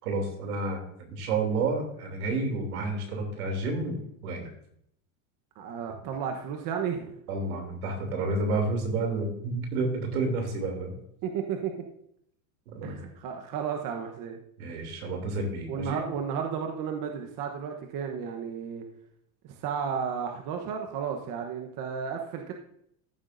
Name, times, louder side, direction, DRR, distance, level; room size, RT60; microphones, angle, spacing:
voice 1, 0.0-4.5 7.3-10.9 12.7-13.0 14.6-16.0, right 3 dB, 90° right, 3 dB, 3.1 m, -30 dB
voice 2, 5.6-7.1 11.2-11.7 12.8-14.4 15.7-18.8 19.5-22.5, right 7 dB, 45° right, 3 dB, 1.2 m, -33 dB
14.5 x 7.4 x 2.7 m, 0.70 s
supercardioid pair, 125°, 43 cm